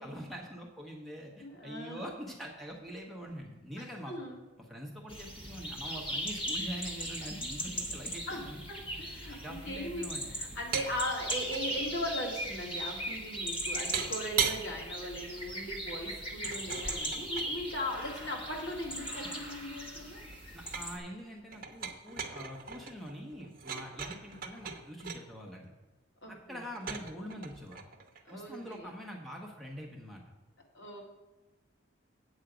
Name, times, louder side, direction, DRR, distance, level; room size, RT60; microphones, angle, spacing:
voice 1, 0.0-4.1 4.6-8.6 9.2-10.4 20.5-25.7 26.3-27.8 28.3-30.3, equal, ahead, -1 dB, 1.1 m, -44 dB
voice 2, 1.4-2.0 3.8-4.4 8.3-8.4 8.7-10.1 10.4-20.2 26.2-26.6 28.3-28.9 30.7-31.0, equal, 65° left, -1 dB, 2.2 m, -39 dB
sound 1, 5.1-21.0, equal, 25° left, 1.2 m, -39 dB
sound 2, 10.7-10.9 11.2-11.6 13.9-14.6 16.4-17.6 18.5-19.8 20.1-21.0 21.5-25.2 26.7-28.8, right 7 dB, 45° right, 0.9 m, -38 dB
8.3 x 8.0 x 5.0 m, 1.2 s
head